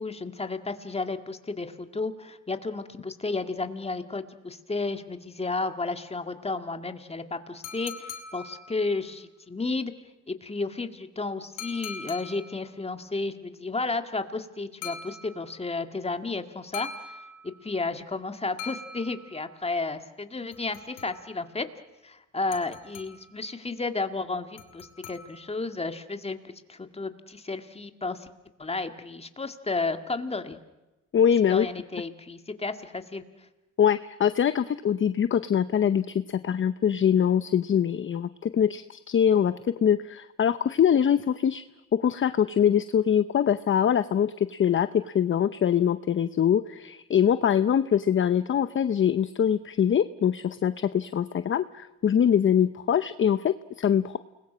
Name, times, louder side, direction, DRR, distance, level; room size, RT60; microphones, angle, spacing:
voice 1, 0.0-9.9 10.3-17.2 17.4-21.7 22.0-28.3 28.6-30.6 31.5-33.2, left 3 dB, 20° left, 7 dB, 2.0 m, -32 dB
sound 1, 7.6-9.1 11.6-12.7 14.8-15.7 16.7-17.8 18.6-19.6 20.5-21.5 22.5-23.4 24.6-25.7, left 5 dB, 85° left, 2.8 m, -42 dB
voice 2, 31.1-31.7 33.8-41.6 41.9-54.2, left 8 dB, 40° left, 13 dB, 0.7 m, -23 dB
29.5 x 21.0 x 6.2 m, 1.0 s
cardioid pair, 90°, 30 cm